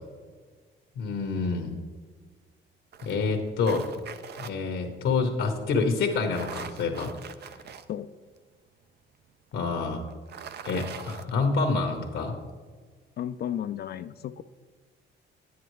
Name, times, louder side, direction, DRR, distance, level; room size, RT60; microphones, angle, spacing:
voice 1, 1.0-1.7 3.0-3.9 4.4-7.1 9.5-10.0 10.6-12.4, left 4 dB, 80° left, 4 dB, 1.1 m, -27 dB
sound 1, 2.9-4.5 6.1-7.8 8.4-8.5 10.1-11.3, right 7 dB, 55° right, 0.5 m, -41 dB
voice 2, 13.2-14.4, left 10 dB, 55° left, 11 dB, 0.4 m, -33 dB
9.7 x 9.4 x 3.1 m, 1.5 s
cardioid pair, 90°, 20 cm